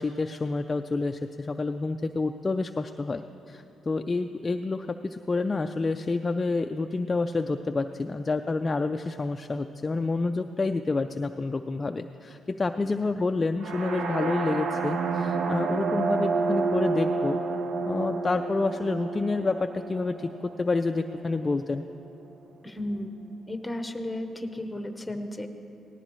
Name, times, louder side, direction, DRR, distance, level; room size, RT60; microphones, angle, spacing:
voice 1, 0.0-17.4 17.8-20.3 20.6-21.8, left 3 dB, 25° left, 6 dB, 0.3 m, -28 dB
sound 1, 13.6-21.5, right 4 dB, 70° right, 0.8 m, -29 dB
voice 2, 22.6-23.1 23.5-25.5, left 1 dB, 10° left, 6 dB, 0.9 m, -34 dB
18.0 x 15.0 x 3.1 m, 3.0 s
cardioid pair, 115°, 0 cm